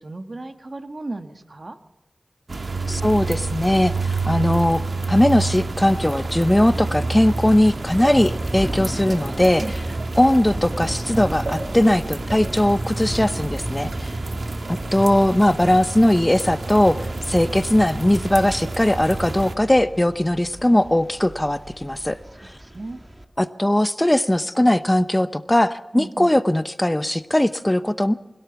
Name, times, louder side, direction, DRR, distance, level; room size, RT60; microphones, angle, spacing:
voice 1, 0.0-1.8 9.6-9.8 14.2-14.4 22.4-23.0 25.9-26.4, right 2 dB, 50° right, 7 dB, 1.5 m, -35 dB
sound 1, 2.5-19.5, right 3 dB, 70° right, 1.8 m, -29 dB
voice 2, 2.9-4.8 5.1-9.6 10.2-14.1 14.7-22.5 23.4-28.1, left 1 dB, 15° left, 12 dB, 0.8 m, -19 dB
Thunder / Rain, 4.8-23.2, right 1 dB, 20° right, 2.0 m, -37 dB
25.0 x 17.0 x 7.0 m, 1.1 s
wide cardioid pair, 70°, 0 cm